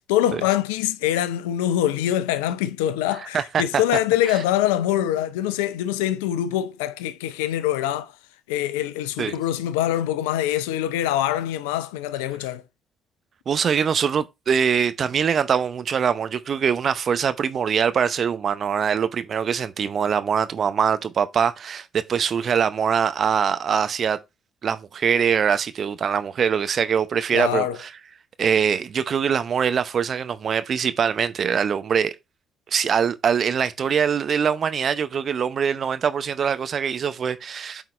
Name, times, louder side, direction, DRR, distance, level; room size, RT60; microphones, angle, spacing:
voice 1, 0.1-8.1 8.5-12.6 27.3-27.8, left 12 dB, 75° left, 0.5 m, -24 dB
voice 2, 3.3-3.8 9.2-9.3 13.5-24.2 24.6-27.9 28.4-32.1 32.7-37.8, right 7 dB, 50° right, 0.7 m, -23 dB
8.3 x 4.0 x 3.2 m
figure-of-eight pair, 45°, 0 cm